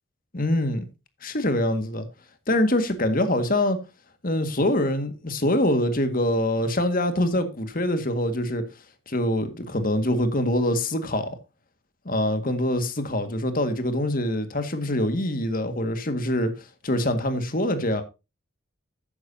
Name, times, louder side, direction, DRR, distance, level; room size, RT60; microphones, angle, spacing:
voice 1, 0.3-0.9 1.2-2.1 2.5-3.8 4.2-8.7 9.1-11.3 12.1-18.0, left 1 dB, 45° left, 1.8 m, -24 dB
13.0 x 10.0 x 2.8 m
head